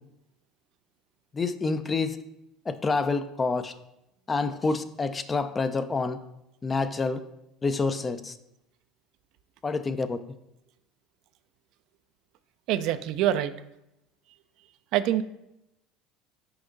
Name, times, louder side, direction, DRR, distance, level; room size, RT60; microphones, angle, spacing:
voice 1, 1.3-2.2 2.7-3.7 4.3-6.2 6.6-7.2 7.6-8.4 9.6-10.2, left 4 dB, 25° left, 11 dB, 0.4 m, -27 dB
voice 2, 12.7-13.5 14.9-15.2, right 12 dB, 65° right, 12 dB, 0.3 m, -25 dB
5.8 x 4.4 x 3.9 m, 0.85 s
supercardioid pair, 110°, 0 cm